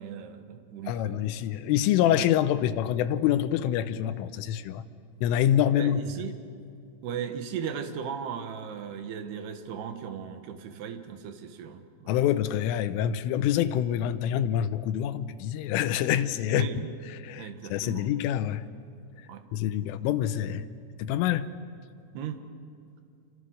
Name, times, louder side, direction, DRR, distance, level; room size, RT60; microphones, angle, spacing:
voice 1, 0.0-1.2 5.7-6.4 7.0-12.1 16.5-16.9 17.4-18.1 19.3-19.5 22.1-22.4, right 7 dB, 65° right, 7 dB, 2.9 m, -37 dB
voice 2, 0.9-4.8 5.2-6.0 12.1-16.7 17.2-18.7 19.5-20.7 21.0-21.5, left 11 dB, 80° left, 11 dB, 3.3 m, -26 dB
28.5 x 25.5 x 6.5 m, 2.5 s
omnidirectional pair, 6.0 m